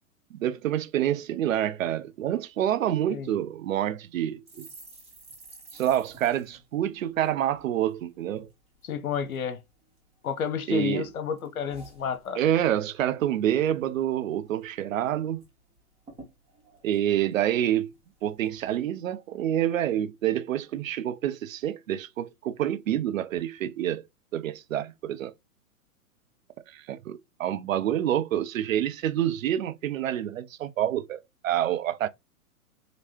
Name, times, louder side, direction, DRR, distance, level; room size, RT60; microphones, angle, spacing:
voice 1, 0.3-4.7 5.7-8.5 10.7-11.0 12.4-15.4 16.8-17.9 18.2-24.0 24.3-25.3 26.7-32.1, right 11 dB, 60° right, 0.7 m, -27 dB
sound 1, 4.5-8.0 8.3-8.5 8.8-9.4 9.9-10.7 11.0-12.7 13.0-13.2 13.5-14.1 14.4-14.5 14.8-15.5 15.8-15.9 16.1-17.9 18.4-18.8, right 2 dB, 15° right, 2.1 m, -52 dB
voice 2, 8.8-9.6 10.2-12.4, left 7 dB, 70° left, 1.1 m, -31 dB
5.0 x 3.2 x 3.0 m
figure-of-eight pair, 110°, 44 cm